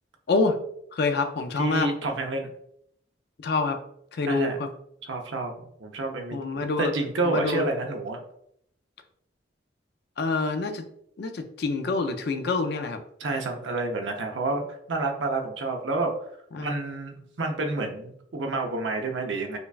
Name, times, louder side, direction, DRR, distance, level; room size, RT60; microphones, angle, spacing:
voice 1, 0.9-1.9 3.4-3.8 4.1-4.7 6.3-6.9 7.2-7.6 10.2-10.8 11.2-13.0 16.5-16.8, left 3 dB, 55° left, 6 dB, 0.4 m, -26 dB
voice 2, 1.6-2.5 4.3-4.6 5.0-8.2 13.2-14.6 14.9-16.1 16.6-19.6, right 2 dB, 75° right, 3 dB, 0.6 m, -29 dB
5.1 x 2.2 x 2.3 m, 0.70 s
head